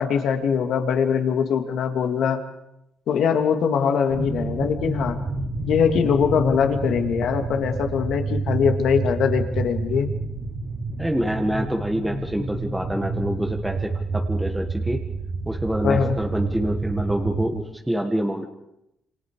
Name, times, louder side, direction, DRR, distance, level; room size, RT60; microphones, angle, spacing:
voice 1, 0.0-2.4 3.1-5.2 5.6-10.1 15.8-16.2, left 7 dB, 65° left, 5 dB, 2.7 m, -22 dB
sound 1, 4.1-17.5, right 3 dB, 45° right, 3.2 m, -29 dB
voice 2, 11.0-15.0 15.5-18.5, equal, 5° right, 3 dB, 1.7 m, -26 dB
28.5 x 27.0 x 5.0 m, 0.83 s
cardioid pair, 135°, 0 cm